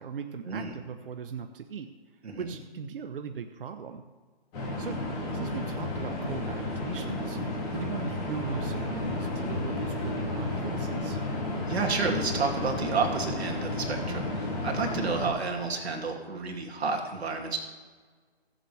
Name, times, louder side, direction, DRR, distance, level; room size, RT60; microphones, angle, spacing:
voice 1, 0.0-1.9 2.4-4.0 4.8-7.4 7.7-11.2, right 6 dB, 60° right, 6 dB, 1.0 m, -39 dB
sound 1, 4.5-15.3, left 2 dB, 20° left, 3.0 m, -32 dB
voice 2, 11.6-17.6, right 4 dB, 80° right, 0 dB, 2.7 m, -30 dB
22.0 x 7.8 x 3.4 m, 1.5 s
hypercardioid pair, 165°, 32 cm